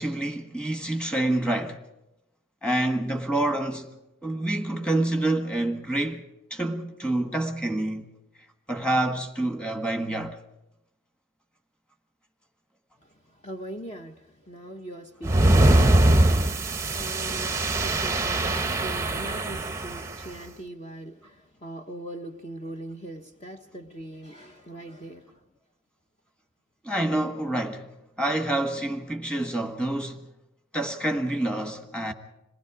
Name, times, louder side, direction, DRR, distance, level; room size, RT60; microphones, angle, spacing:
voice 1, 0.0-1.8 2.6-3.9 4.2-8.1 8.7-10.4 26.8-27.9 28.2-30.2 30.7-32.1, right 1 dB, 5° left, 1.6 m, -27 dB
voice 2, 13.0-25.4, right 1 dB, 30° left, 1.1 m, -41 dB
sound 1, 15.2-20.1, right 1 dB, 15° right, 0.8 m, -22 dB
27.0 x 20.0 x 5.0 m
head